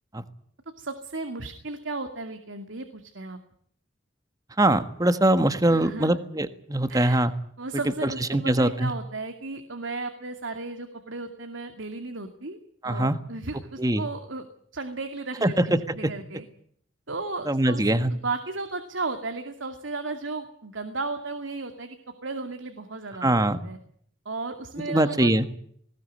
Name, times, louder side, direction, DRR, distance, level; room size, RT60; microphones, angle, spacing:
voice 1, 0.8-3.4 5.7-6.2 6.9-7.2 7.6-12.6 12.8-14.5 14.7-16.5 17.1-22.0 22.2-23.8 24.2-25.5, right 3 dB, 85° right, 7 dB, 2.5 m, -35 dB
voice 2, 4.6-7.3 8.0-8.9 12.8-13.2 13.8-14.0 15.4-16.0 17.5-18.1 23.2-23.6 24.8-25.5, right 1 dB, 20° right, 11 dB, 1.5 m, -22 dB
20.0 x 19.5 x 9.6 m, 0.65 s
head